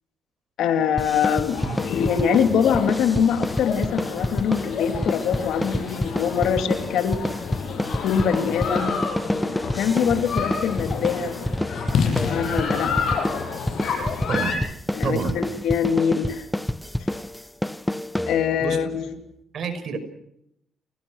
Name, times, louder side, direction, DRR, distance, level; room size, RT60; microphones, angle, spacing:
voice 1, 0.6-7.2 8.0-9.0 9.7-11.4 11.9-12.9 14.9-16.5 18.3-19.1, left 7 dB, 80° left, 7 dB, 2.7 m, -23 dB
sound 1, 1.0-18.7, left 1 dB, 5° left, 1.1 m, -28 dB
sound 2, 1.5-14.6, left 6 dB, 65° left, 7.9 m, -29 dB
voice 2, 14.3-14.6 15.0-15.4 18.6-18.8 19.5-20.0, right 5 dB, 60° right, 9 dB, 5.5 m, -28 dB
29.5 x 19.5 x 6.4 m, 0.78 s
cardioid pair, 90°, 0 cm